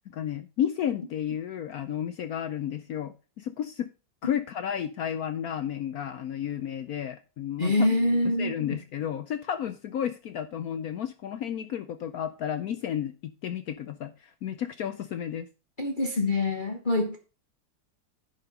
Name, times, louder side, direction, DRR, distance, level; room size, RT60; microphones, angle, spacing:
voice 1, 0.1-3.9 4.2-7.9 8.4-15.5, left 9 dB, 70° left, 0.9 m, -32 dB
voice 2, 7.6-8.8 15.8-17.2, left 2 dB, 30° left, 1.1 m, -25 dB
10.0 x 5.4 x 5.2 m
omnidirectional pair, 2.2 m